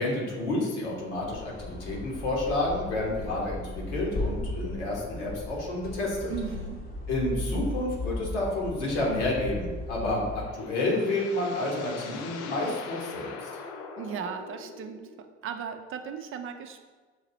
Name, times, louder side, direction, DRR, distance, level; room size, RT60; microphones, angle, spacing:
voice 1, 0.0-6.3 7.1-13.5, left 2 dB, 75° left, -3 dB, 1.4 m, -30 dB
sound 1, 1.1-10.6, left 2 dB, 25° left, 0.9 m, -36 dB
voice 2, 6.3-6.8 14.0-16.8, right 7 dB, 35° right, 7 dB, 0.5 m, -37 dB
sound 2, 10.3-15.3, left 5 dB, 55° left, 0.6 m, -42 dB
6.3 x 2.8 x 2.9 m, 1.4 s
figure-of-eight pair, 60°, 35 cm